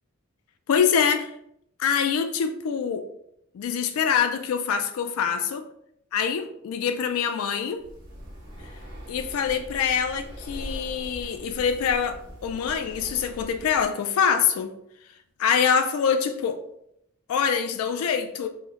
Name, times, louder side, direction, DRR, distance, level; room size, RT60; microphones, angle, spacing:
voice 1, 0.7-1.3 1.8-3.0 3.5-5.6 6.1-7.8 9.1-14.7 15.4-16.6 17.3-18.5, left 7 dB, 85° left, 10 dB, 0.3 m, -25 dB
Breathing, 7.8-13.9, equal, 55° right, 0.8 m, -41 dB
3.2 x 2.0 x 3.5 m, 0.75 s
head